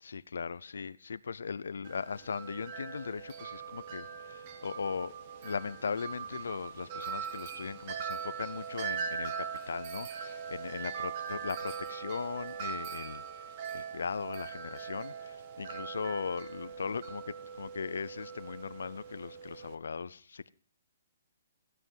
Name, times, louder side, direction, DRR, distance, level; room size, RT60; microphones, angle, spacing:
voice 1, 0.0-5.1 5.4-20.5, left 5 dB, 80° left, 0.5 m, -38 dB
Wind chime, 1.9-19.8, right 6 dB, 25° right, 0.9 m, -41 dB
16.0 x 9.7 x 5.4 m
hypercardioid pair, 180°, 0 cm